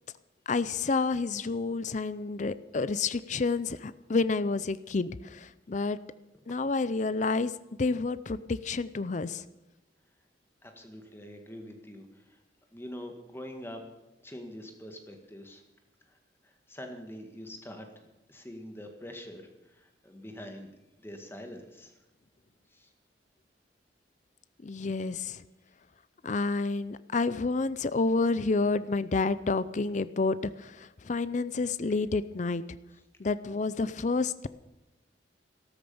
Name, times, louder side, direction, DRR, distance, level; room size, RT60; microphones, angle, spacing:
voice 1, 0.5-6.0 6.5-7.5 7.8-9.4 24.6-25.4 26.2-32.6 33.2-34.5, left 3 dB, 45° left, 15 dB, 0.5 m, -29 dB
voice 2, 10.6-12.4 12.7-13.8 14.2-15.6 16.1-16.2 16.4-17.9 18.3-20.7 21.0-21.9 22.7-22.9, equal, 15° left, 4 dB, 1.8 m, -44 dB
13.5 x 13.0 x 7.0 m, 0.98 s
head